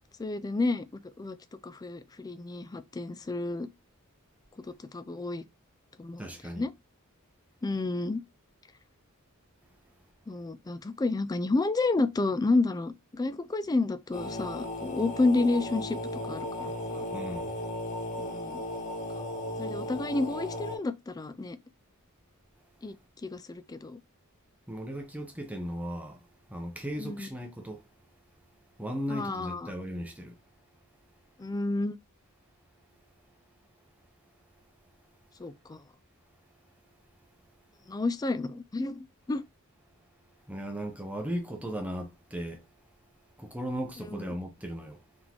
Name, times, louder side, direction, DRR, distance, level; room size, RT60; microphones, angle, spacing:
voice 1, 0.2-0.8 1.2-1.4 1.6-3.7 4.7-5.4 6.0-6.2 6.5-6.7 7.6-8.2 10.3-16.0 16.3-17.0 18.2-18.6 19.6-21.6 22.8-22.9 23.2-24.0 27.0-27.3 29.1-29.7 31.4-32.0 35.4-35.8 37.9-39.4 44.1-44.3, left 3 dB, 15° left, 0.3 m, -30 dB
voice 2, 6.2-6.6 17.1-17.6 24.7-26.2 26.5-27.8 28.8-30.3 40.5-42.6 43.4-45.0, equal, 5° right, 0.7 m, -36 dB
sound 1, 14.1-20.8, left 1 dB, 35° left, 1.6 m, -36 dB
4.1 x 3.6 x 2.9 m
head